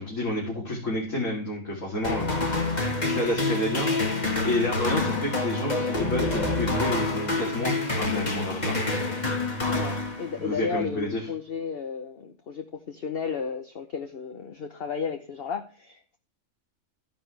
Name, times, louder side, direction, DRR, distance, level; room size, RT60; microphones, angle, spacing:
voice 1, 0.0-8.7 10.4-11.2, left 1 dB, 70° left, -4 dB, 3.7 m, -30 dB
sound 1, 2.0-10.6, left 2 dB, 30° left, 1.9 m, -27 dB
voice 2, 9.7-16.2, left 6 dB, 50° left, 5 dB, 1.1 m, -33 dB
13.5 x 10.5 x 3.4 m, 0.38 s
omnidirectional pair, 1.4 m